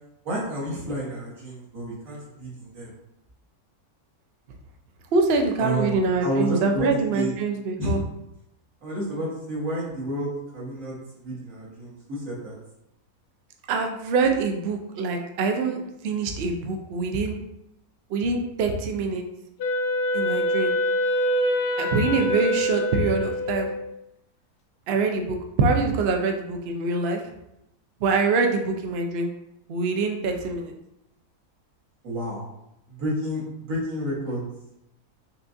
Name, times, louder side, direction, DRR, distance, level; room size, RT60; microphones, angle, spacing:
voice 1, 0.2-2.9 5.6-7.3 7.8-8.0 8.8-12.6 32.0-32.4 32.9-34.4, equal, 55° right, -7 dB, 1.7 m, -30 dB
voice 2, 5.1-8.0 13.7-15.8 16.0-17.4 18.1-19.2 20.1-20.7 21.8-23.7 24.9-27.2 28.0-29.3 29.7-30.7, right 4 dB, 85° right, 3 dB, 0.5 m, -24 dB
Wind instrument woodwind instrument, 19.6-23.9, equal, 85° left, 1.2 m, -25 dB
5.6 x 2.4 x 2.6 m, 0.84 s
omnidirectional pair, 1.7 m